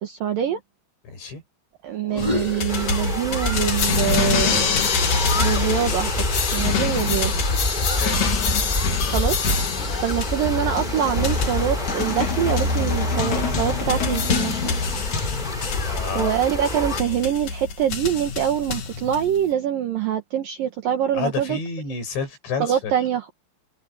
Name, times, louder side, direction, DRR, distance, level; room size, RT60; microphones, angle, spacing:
voice 1, 0.0-0.6 1.8-4.8 5.3-6.3 6.5-7.3 9.1-9.4 10.0-14.8 16.2-21.6 22.6-23.3, right 9 dB, 65° right, 2.7 m, -24 dB
voice 2, 1.0-1.4 7.8-8.3 15.8-16.4 21.1-22.9, left 5 dB, 80° left, 10.0 m, -30 dB
sound 1, 2.0-3.8 4.1-6.3, left 1 dB, 10° right, 3.7 m, -33 dB
sound 2, 2.2-19.5, left 5 dB, 50° left, 3.7 m, -25 dB
sound 3, 2.7-17.0, left 1 dB, 10° left, 4.5 m, -28 dB
omnidirectional pair, 5.1 m